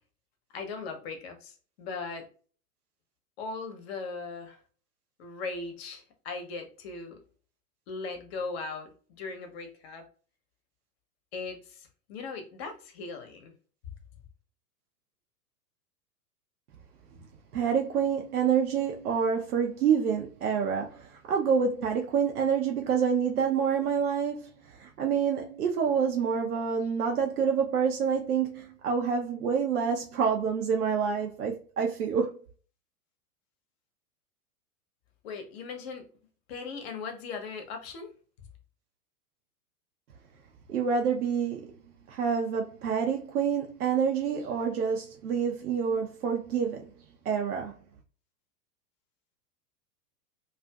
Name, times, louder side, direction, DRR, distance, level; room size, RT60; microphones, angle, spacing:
voice 1, 0.5-2.3 3.4-4.6 5.2-7.2 7.9-10.1 11.3-13.5 35.2-36.1 36.5-38.1 38.4-38.5, left 4 dB, 40° left, 0.8 m, -39 dB
voice 2, 17.5-32.4 40.7-41.8 42.1-46.9 47.2-47.7, right 6 dB, 70° right, 0.6 m, -27 dB
2.5 x 2.4 x 2.2 m
figure-of-eight pair, 100°, 46 cm